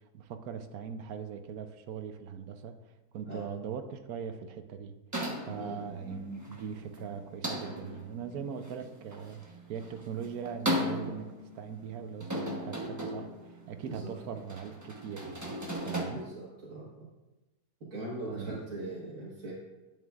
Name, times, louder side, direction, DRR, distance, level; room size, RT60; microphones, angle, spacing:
voice 1, 0.1-2.9 3.1-5.0 5.5-15.6 15.8-16.2 18.3-18.6, right 7 dB, 70° right, 8 dB, 1.0 m, -40 dB
sound 1, 5.1-16.0, equal, 15° right, 0.8 m, -37 dB
voice 2, 5.6-5.9 13.8-14.1 16.1-17.1 17.9-19.5, right 1 dB, 50° right, -7 dB, 1.7 m, -40 dB
11.0 x 8.8 x 2.4 m, 1.1 s
omnidirectional pair, 1.7 m